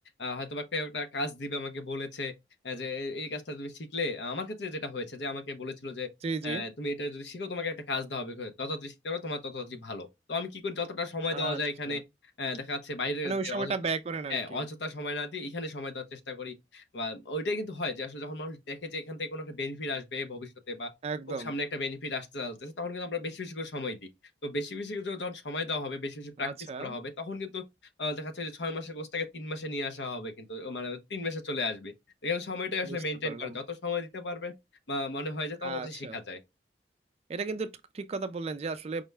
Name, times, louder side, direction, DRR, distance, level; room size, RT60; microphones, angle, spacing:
voice 1, 0.2-2.3 2.6-6.1 6.4-12.0 12.4-13.7 14.3-20.9 21.3-24.0 24.4-26.5 26.8-27.6 28.0-31.9 32.2-34.5 34.9-36.4, left 2 dB, 70° left, 0.7 m, -35 dB
voice 2, 6.2-6.6 11.3-11.6 11.9-12.0 13.2-14.6 21.0-21.5 26.4-27.0 32.8-33.0 33.2-33.6 35.6-36.2 37.3-39.0, right 4 dB, 35° right, 0.3 m, -34 dB
5.0 x 2.1 x 3.3 m
head